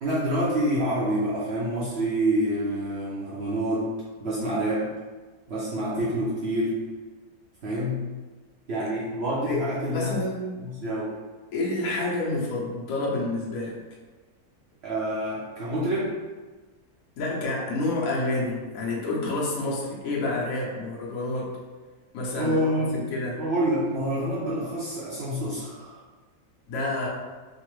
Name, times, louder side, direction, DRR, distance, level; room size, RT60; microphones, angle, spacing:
voice 1, 0.0-3.9 4.2-4.9 5.5-6.8 7.6-8.0 8.7-10.1 10.6-11.1 14.8-16.1 22.4-23.0 23.4-26.0, right 1 dB, 75° right, -8 dB, 0.6 m, -27 dB
voice 2, 9.5-10.7 11.5-13.8 17.2-21.6 22.1-22.6 22.9-23.4 26.7-27.1, left 2 dB, 60° left, -4 dB, 1.1 m, -29 dB
3.5 x 2.0 x 3.0 m, 1.3 s
omnidirectional pair, 1.8 m